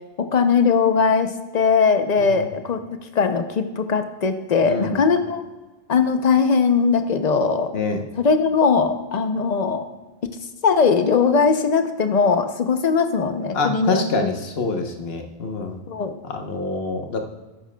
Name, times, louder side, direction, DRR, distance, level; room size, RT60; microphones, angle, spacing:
voice 1, 0.2-2.8 3.1-5.4 5.9-7.7 8.2-9.8 10.6-14.3 15.9-16.1, left 5 dB, 45° left, 8 dB, 0.7 m, -20 dB
voice 2, 4.6-5.0 7.7-8.0 13.5-15.8 16.3-17.2, left 3 dB, 75° left, 4 dB, 1.2 m, -26 dB
13.0 x 9.8 x 2.3 m, 1.2 s
omnidirectional pair, 1.0 m